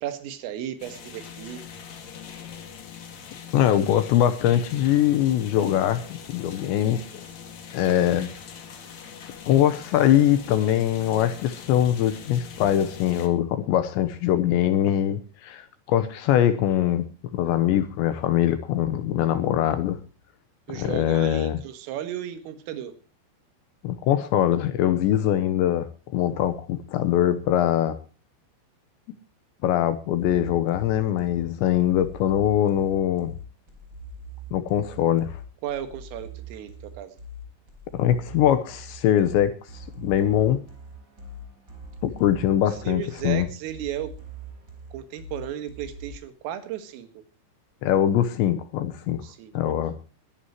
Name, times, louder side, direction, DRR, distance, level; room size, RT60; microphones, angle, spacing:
voice 1, 0.0-1.6 20.7-23.0 35.6-37.2 42.7-44.2 44.9-47.1 49.2-49.7, right 11 dB, 80° right, 4.3 m, -35 dB
sound 1, 0.8-13.3, left 7 dB, 50° left, 2.4 m, -42 dB
voice 2, 3.5-7.2 7.7-8.3 9.5-17.0 17.3-20.0 20.7-21.6 23.8-28.0 29.6-33.3 34.5-35.4 37.9-40.6 42.0-43.5 47.8-49.2 49.5-50.0, left 11 dB, 75° left, 2.9 m, -22 dB
sound 2, 30.2-46.2, right 2 dB, 20° right, 3.7 m, -42 dB
22.5 x 11.5 x 3.0 m
omnidirectional pair, 5.8 m